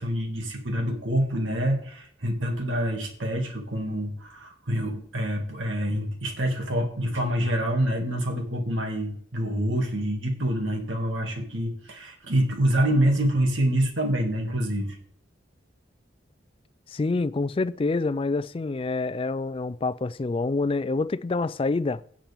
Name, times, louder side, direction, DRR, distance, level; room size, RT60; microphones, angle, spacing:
voice 1, 0.0-15.0, right 1 dB, 85° right, 2.2 m, -26 dB
voice 2, 16.9-22.0, left 3 dB, 30° left, 0.3 m, -27 dB
16.5 x 7.4 x 3.5 m
head